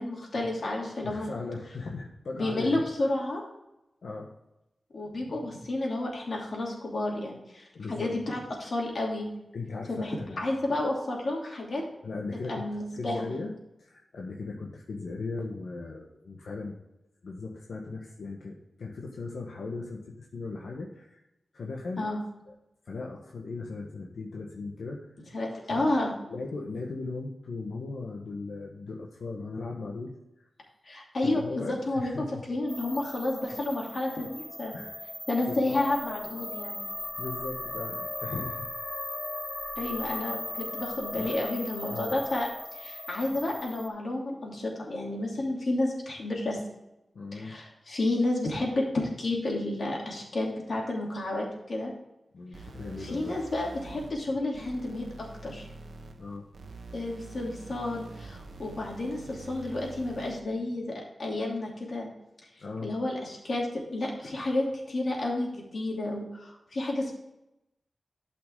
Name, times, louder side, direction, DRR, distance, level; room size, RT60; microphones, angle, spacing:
voice 1, 0.0-1.3 2.3-3.4 4.9-9.3 9.9-11.8 12.5-13.3 22.0-22.2 25.3-26.1 30.8-34.8 35.3-36.9 39.8-46.6 47.3-51.9 53.0-55.7 56.9-62.1 62.8-67.1, left 2 dB, 55° left, -2 dB, 2.8 m, -31 dB
voice 2, 1.0-3.0 4.0-4.3 7.7-8.2 9.5-10.5 12.0-12.7 13.0-13.5 13.8-16.8 17.2-20.0 20.3-21.2 21.5-22.1 22.5-22.6 22.8-25.1 25.7-26.0 26.3-30.5 31.2-32.3 34.7-35.0 35.5-35.8 37.2-38.7 41.1-41.4 41.9-42.3 47.1-47.6 52.3-53.4 56.2-56.4 62.6-62.9, left 3 dB, 90° left, -1 dB, 1.3 m, -38 dB
sound 1, 32.7-43.9, left 1 dB, 25° left, 1.2 m, -38 dB
sound 2, 52.5-60.5, right 3 dB, 80° right, 1.1 m, -46 dB
12.5 x 5.8 x 3.6 m, 0.90 s
wide cardioid pair, 130°, 0 cm